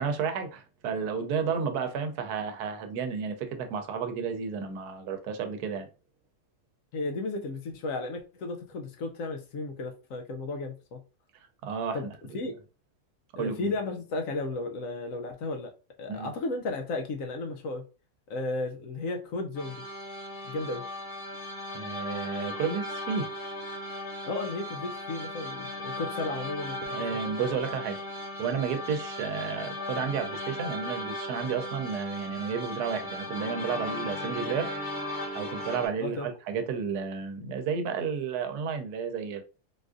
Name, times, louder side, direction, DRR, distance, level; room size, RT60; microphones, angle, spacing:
voice 1, 0.0-5.9 11.6-12.0 13.4-13.7 16.1-16.3 21.7-23.3 26.8-28.0 28.4-34.7 35.3-39.4, right 6 dB, 85° right, 1.1 m, -32 dB
voice 2, 6.9-11.0 11.9-12.1 12.3-12.5 13.4-15.7 16.0-17.8 18.3-19.8 20.5-20.8 24.3-26.8 27.1-27.2 36.0-36.3, left 2 dB, 70° left, 0.9 m, -34 dB
sound 1, 19.5-35.9, left 1 dB, 35° left, 0.9 m, -37 dB
3.8 x 2.4 x 2.4 m
omnidirectional pair, 1.7 m